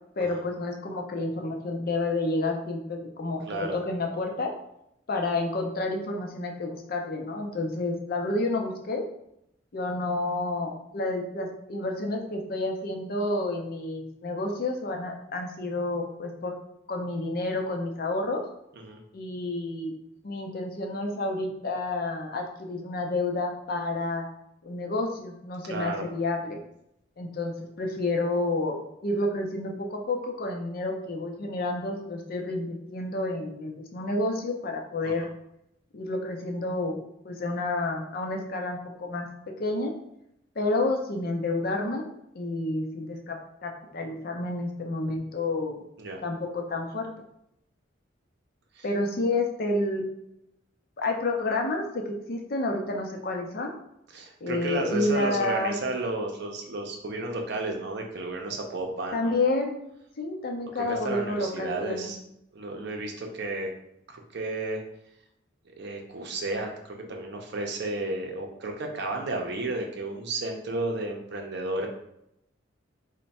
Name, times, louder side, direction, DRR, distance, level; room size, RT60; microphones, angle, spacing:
voice 1, 0.2-3.4 3.7-4.5 5.1-9.0 9.7-16.5 16.9-18.4 19.1-19.9 20.2-24.3 24.6-26.6 27.2-35.2 35.9-39.3 39.6-39.9 40.6-42.1 42.3-45.8 46.2-47.1 48.8-50.0 51.0-53.7 54.4-55.8 59.1-59.8 60.2-62.1, left 2 dB, 50° left, 3 dB, 0.6 m, -30 dB
voice 2, 3.5-3.8 18.8-19.0 25.7-26.0 35.0-35.1 46.0-46.2 48.8-48.9 54.1-59.6 60.7-62.2 62.5-63.7 64.1-64.8 65.8-71.9, right 2 dB, 65° right, 2 dB, 0.6 m, -32 dB
3.3 x 2.2 x 4.1 m, 0.78 s
head